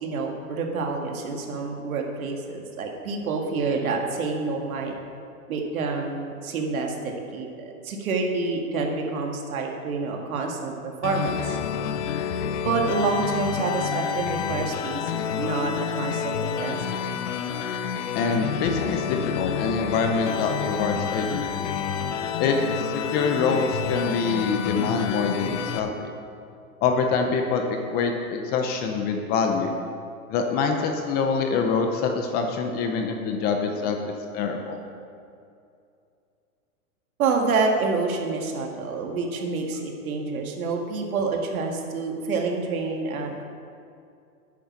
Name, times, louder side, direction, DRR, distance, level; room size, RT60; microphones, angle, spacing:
voice 1, 0.0-5.0 5.5-11.6 12.6-17.1 37.2-43.4, right 4 dB, 70° right, 1 dB, 2.0 m, -28 dB
sound 1, 11.0-25.8, left 7 dB, 55° left, 0.9 m, -29 dB
voice 2, 18.1-21.7 22.4-26.1 26.8-29.7 30.3-34.0 34.3-34.8, left 5 dB, 20° left, 4 dB, 0.6 m, -25 dB
9.7 x 8.8 x 5.9 m, 2.5 s
hypercardioid pair, 145°, 44 cm